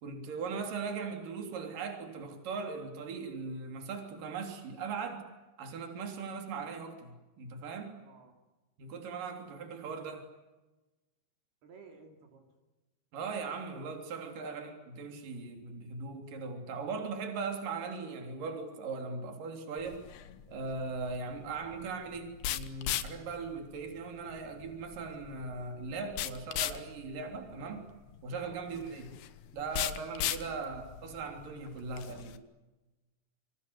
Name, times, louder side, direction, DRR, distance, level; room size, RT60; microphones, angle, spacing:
voice 1, 0.0-5.2 5.6-8.0 8.8-10.2 13.1-20.0 20.5-27.8 28.2-29.1 29.5-32.4, right 4 dB, 55° right, 4 dB, 4.9 m, -39 dB
voice 2, 8.0-8.3 11.6-12.5 14.3-14.5 28.4-28.6 30.4-30.6, right 5 dB, 75° right, 3 dB, 5.0 m, -56 dB
sound 1, 19.8-32.4, left 12 dB, 85° left, 3.3 m, -39 dB
28.0 x 25.5 x 8.1 m, 1.1 s
omnidirectional pair, 4.6 m